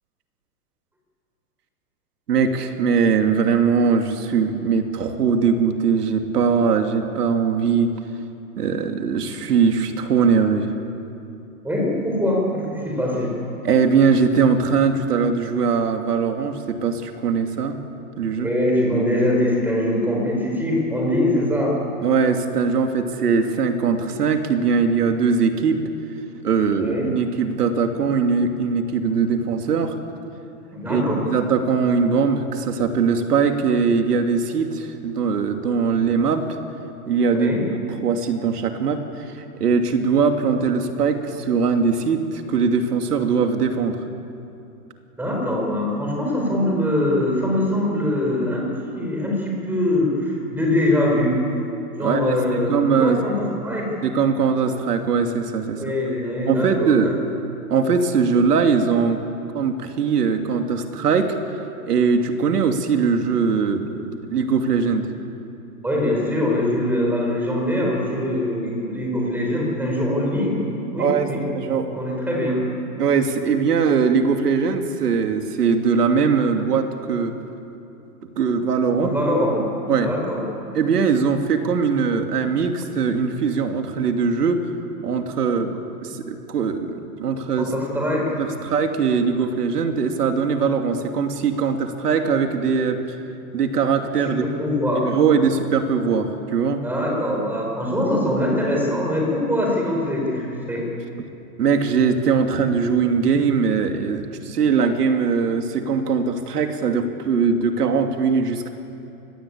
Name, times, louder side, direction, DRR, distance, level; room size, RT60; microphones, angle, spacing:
voice 1, 2.3-7.9 8.6-10.7 13.6-17.8 18.2-18.5 22.0-25.8 26.4-29.9 30.9-36.4 37.1-37.5 38.0-44.0 52.0-53.2 54.0-55.8 56.5-57.1 57.7-59.2 59.5-61.4 61.9-63.9 64.3-65.1 71.0-71.9 73.0-77.3 78.4-79.1 79.9-80.1 80.7-84.6 85.0-85.7 86.0-87.7 88.4-93.0 93.5-94.5 95.1-96.8 101.6-108.7, right 5 dB, 85° right, 5 dB, 2.8 m, -21 dB
voice 2, 11.6-13.3 18.4-21.8 26.8-27.1 30.7-31.2 37.3-37.7 45.2-51.4 51.9-54.0 55.8-57.1 65.8-70.6 70.9-71.4 71.9-72.6 79.0-79.7 80.0-80.4 85.5-85.6 87.6-88.3 94.4-95.1 96.8-100.8, left 1 dB, 5° right, -1 dB, 5.1 m, -23 dB
25.0 x 20.5 x 8.7 m, 2.8 s
hypercardioid pair, 160°, 45 cm